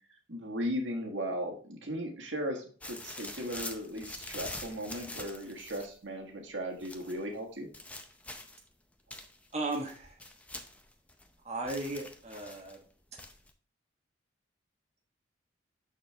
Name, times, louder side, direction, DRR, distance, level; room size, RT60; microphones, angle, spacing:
voice 1, 0.3-7.7, equal, 80° right, 3 dB, 1.6 m, -37 dB
sound 1, 2.8-6.0 6.8-7.2 7.7-8.7 9.1-11.3 11.7-12.8 13.2-13.5, left 2 dB, 5° left, 0.5 m, -45 dB
voice 2, 9.5-10.1 11.4-12.8, right 2 dB, 35° right, 0 dB, 1.3 m, -36 dB
6.4 x 6.3 x 3.4 m, 0.42 s
head